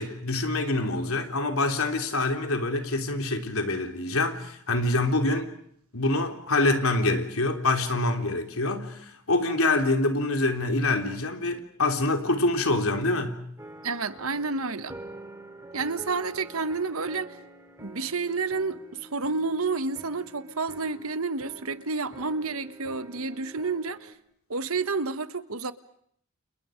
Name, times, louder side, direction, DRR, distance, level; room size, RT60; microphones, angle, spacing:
voice 1, 0.0-5.5 5.9-13.4, left 2 dB, 80° left, 3.6 m, -26 dB
sound 1, 13.6-24.1, right 1 dB, 15° right, 3.4 m, -47 dB
voice 2, 13.8-15.0 15.7-17.4 17.8-24.1 24.5-25.7, right 4 dB, 80° right, 1.4 m, -30 dB
30.0 x 29.5 x 5.2 m
head